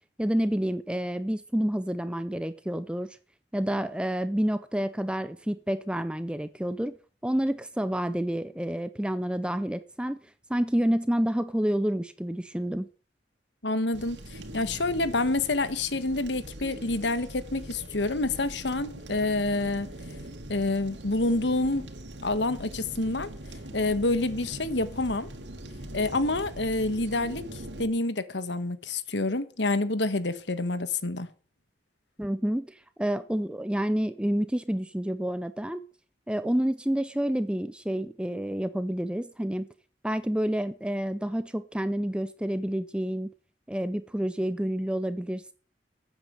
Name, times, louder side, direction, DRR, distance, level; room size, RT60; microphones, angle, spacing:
voice 1, 0.2-3.2 3.5-6.9 7.2-10.2 10.5-12.9 32.2-35.8 36.3-39.7 40.0-43.3 43.7-45.5, equal, 5° right, 0.6 m, -29 dB
voice 2, 13.6-19.9 20.5-21.9 22.2-23.3 23.7-25.3 25.9-31.3, left 2 dB, 85° left, 1.4 m, -28 dB
sound 1, 13.9-27.9, right 1 dB, 90° right, 2.6 m, -42 dB
13.0 x 9.0 x 8.0 m
head